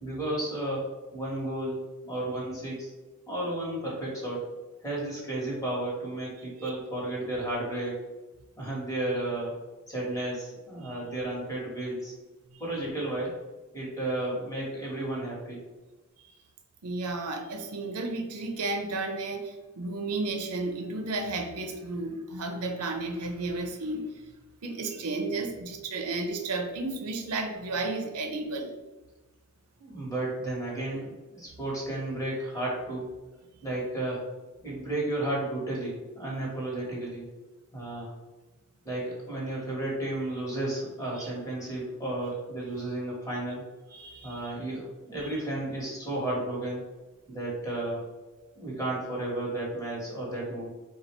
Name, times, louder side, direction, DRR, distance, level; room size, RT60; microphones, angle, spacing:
voice 1, 0.0-1.8 2.1-2.9 3.3-4.4 4.8-8.0 8.6-9.5 9.9-12.1 12.6-13.4 13.7-15.6 29.8-33.1 33.6-34.2 34.6-37.3 37.7-38.1 38.8-43.6 44.2-46.8 47.3-48.0 48.5-50.7, right 1 dB, 15° left, -4 dB, 1.3 m, -33 dB
voice 2, 16.8-24.3 24.6-28.7 41.2-41.3 43.9-44.5 45.2-45.4, right 2 dB, 85° right, 4 dB, 0.6 m, -33 dB
3.9 x 2.4 x 4.4 m, 1.2 s
head